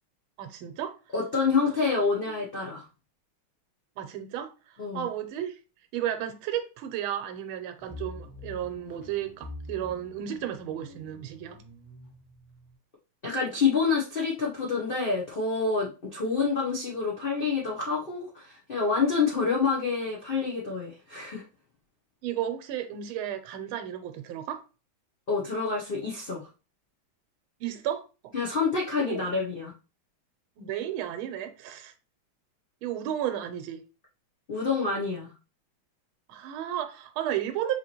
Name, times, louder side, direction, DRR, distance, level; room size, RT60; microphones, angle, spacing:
voice 1, 0.4-0.9 1.6-2.3 4.0-4.5 4.9-5.6 5.9-11.6 22.2-24.6 27.6-28.0 28.9-29.4 30.6-31.9 32.8-33.8 36.3-37.8, right 10 dB, 80° right, 1.5 m, -33 dB
voice 2, 1.1-2.8 4.8-5.1 13.2-21.4 25.3-26.4 28.3-29.7 34.5-35.3, left 4 dB, 80° left, 0.5 m, -27 dB
sound 1, 7.8-12.8, left 2 dB, 15° left, 0.7 m, -46 dB
5.3 x 2.9 x 2.9 m
omnidirectional pair, 2.3 m